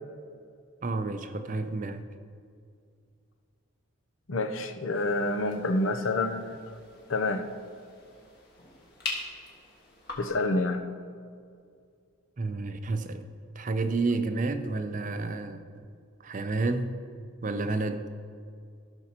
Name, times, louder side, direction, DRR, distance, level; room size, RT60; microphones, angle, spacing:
voice 1, 0.8-2.1 12.4-13.3 13.6-15.8 16.2-16.9 17.4-18.1, right 3 dB, 40° right, 9 dB, 0.5 m, -30 dB
voice 2, 4.3-6.6 7.1-7.4 10.2-10.8, left 2 dB, 70° left, 7 dB, 0.7 m, -28 dB
sound 1, 4.9-10.4, left 3 dB, 50° left, 1.6 m, -42 dB
15.0 x 6.3 x 2.9 m, 2.3 s
head